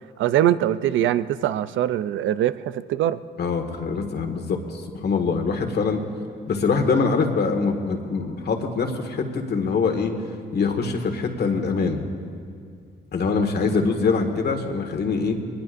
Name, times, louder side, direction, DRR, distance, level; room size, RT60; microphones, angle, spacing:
voice 1, 0.2-3.2, right 12 dB, 75° right, 14 dB, 0.5 m, -22 dB
voice 2, 3.4-6.0 6.5-10.1 10.5-12.0 13.1-15.4, left 4 dB, 55° left, 4 dB, 1.7 m, -24 dB
21.5 x 20.0 x 2.6 m, 2.2 s
cardioid pair, 90°, 20 cm